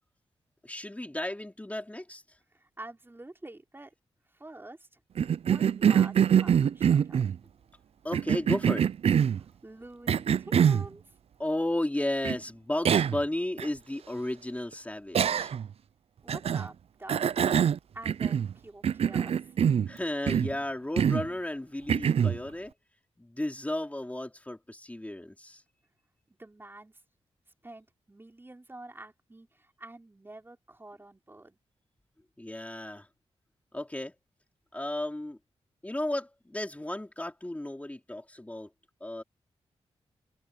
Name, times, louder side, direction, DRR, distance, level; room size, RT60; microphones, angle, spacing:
voice 1, 0.6-2.2 8.0-8.9 11.4-15.5 19.9-22.7 23.2-25.6 32.4-33.1 33.7-34.1 34.7-35.4 35.8-38.7 39.0-39.2, left 1 dB, 15° left, 3.7 m, -34 dB
voice 2, 2.5-3.9 4.3-5.0 5.4-7.3 9.4-11.0 16.2-17.2 17.9-19.5 26.3-27.0 27.6-31.6, right 2 dB, 20° right, 5.4 m, -47 dB
Cough, 5.2-7.4 8.1-9.4 10.1-10.9 12.2-12.4 12.8-13.2 13.6-13.7 15.1-15.7 16.3-16.7 17.1-18.5 18.8-19.9 20.3-20.6 21.0-21.3 21.9-22.4, right 8 dB, 65° right, 0.5 m, -24 dB
cardioid pair, 70°, 11 cm